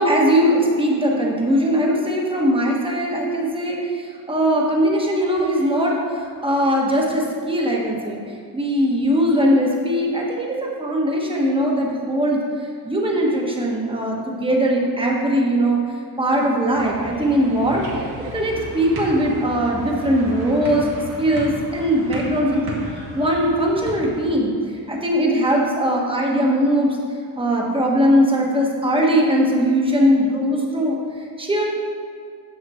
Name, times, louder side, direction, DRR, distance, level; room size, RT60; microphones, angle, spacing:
voice 1, 0.0-3.8 4.3-6.0 6.4-8.2 8.5-12.4 12.9-15.8 16.2-17.8 18.3-20.8 21.2-22.8 23.1-24.5 24.9-27.0 27.4-31.0 31.4-31.6, equal, 15° right, -2 dB, 1.3 m, -20 dB
sound 1, 16.7-24.3, right 1 dB, 60° right, 2.2 m, -34 dB
9.7 x 7.0 x 4.3 m, 2.2 s
wide cardioid pair, 165°, 41 cm